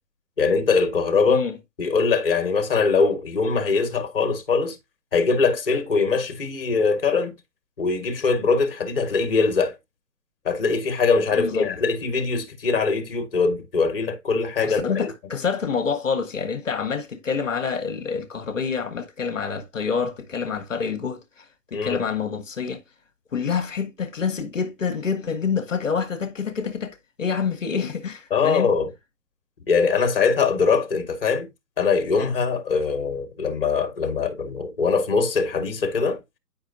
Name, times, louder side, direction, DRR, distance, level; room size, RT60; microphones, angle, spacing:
voice 1, 0.4-1.4 1.8-4.8 5.1-7.4 7.8-9.8 10.4-15.1 21.7-22.0 28.3-28.9 29.7-31.5 31.8-36.2, left 4 dB, 35° left, 1.4 m, -22 dB
voice 2, 11.3-11.7 14.6-22.8 23.3-28.7, left 6 dB, 50° left, 1.1 m, -27 dB
9.9 x 5.4 x 2.6 m
hypercardioid pair, 180°, 49 cm